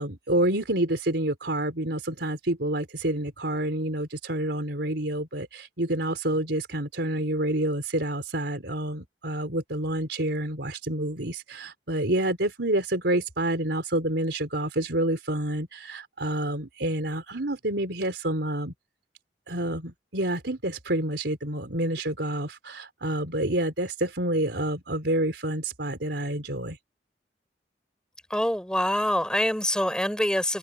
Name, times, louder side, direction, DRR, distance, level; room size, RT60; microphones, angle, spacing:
voice 1, 0.0-18.7 19.5-26.8, right 1 dB, 75° right, 4.1 m, -28 dB
voice 2, 28.3-30.6, left 1 dB, 5° left, 6.4 m, -25 dB
head